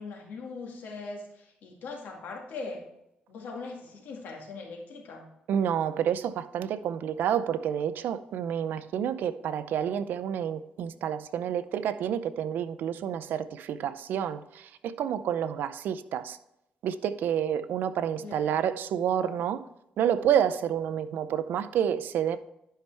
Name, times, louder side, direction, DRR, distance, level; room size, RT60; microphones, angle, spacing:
voice 1, 0.0-2.8 3.3-5.3 18.2-18.7, left 3 dB, 80° left, 2.1 m, -40 dB
voice 2, 5.5-16.4 16.8-19.6 20.0-22.4, right 9 dB, 80° right, 0.5 m, -29 dB
11.0 x 5.6 x 3.4 m
cardioid pair, 110°, 3 cm